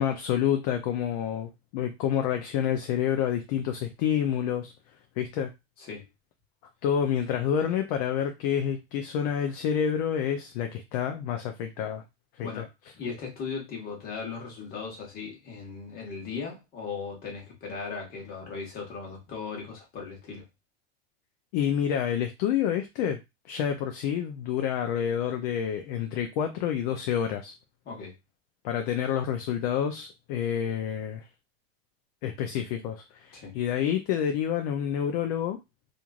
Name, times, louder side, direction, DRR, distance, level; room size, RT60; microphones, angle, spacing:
voice 1, 0.0-4.7 5.2-5.5 6.8-12.0 12.4-12.7 21.5-23.2 23.5-27.5 28.6-31.2 32.2-35.6, left 9 dB, 50° left, 5 dB, 0.4 m, -28 dB
voice 2, 12.9-20.4 27.8-28.1 33.3-33.5, left 5 dB, 30° left, 0 dB, 1.1 m, -37 dB
3.0 x 2.5 x 2.3 m, 0.22 s
supercardioid pair, 160°, 31 cm